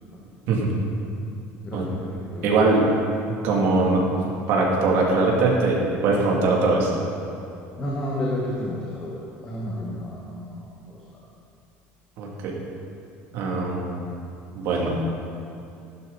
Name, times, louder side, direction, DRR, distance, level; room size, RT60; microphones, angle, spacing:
voice 1, 1.6-2.5 7.8-11.0, left 1 dB, 20° left, -4 dB, 1.6 m, -31 dB
voice 2, 2.4-2.9 3.3-4.0 4.5-6.9 12.2-12.5 13.3-14.1 14.5-14.9, right 3 dB, 55° right, -2 dB, 2.7 m, -21 dB
15.0 x 11.5 x 4.2 m, 2.7 s
cardioid pair, 170°, 5 cm